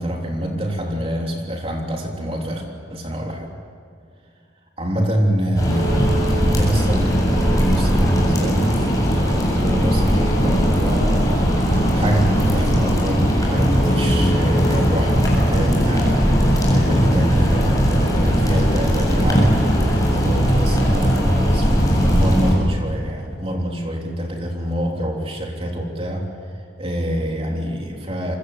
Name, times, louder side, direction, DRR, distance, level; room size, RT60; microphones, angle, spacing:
voice 1, 0.0-3.5 4.8-11.7 11.9-19.6 20.0-26.3 26.8-28.4, equal, 30° right, 1 dB, 3.4 m, -25 dB
sound 1, 5.6-22.5, equal, 20° left, 7.9 m, -18 dB
sound 2, 13.6-14.3 14.6-15.2 16.0-16.9 17.8-18.8 19.1-19.8 21.5-22.3, equal, 85° left, 4.3 m, -28 dB
28.5 x 25.0 x 8.2 m, 2.4 s
head